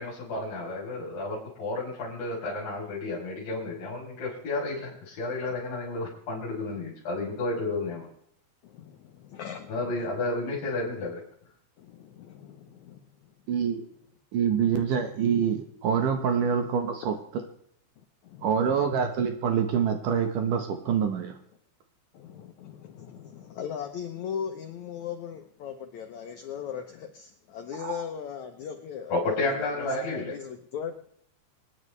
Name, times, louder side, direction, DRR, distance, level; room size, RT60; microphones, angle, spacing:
voice 1, 0.0-8.1 9.7-11.2 29.1-30.3, left 2 dB, 60° left, -5 dB, 5.2 m, -31 dB
voice 2, 8.6-10.1 11.8-13.3 14.6-15.0 18.2-18.5 18.8-19.0 22.1-31.0, left 8 dB, 90° left, 6 dB, 1.6 m, -39 dB
voice 3, 13.5-13.8 14.3-17.1 18.4-21.3 27.8-28.0, right 7 dB, 65° right, 5 dB, 2.4 m, -26 dB
26.0 x 9.8 x 3.3 m, 0.67 s
omnidirectional pair, 4.7 m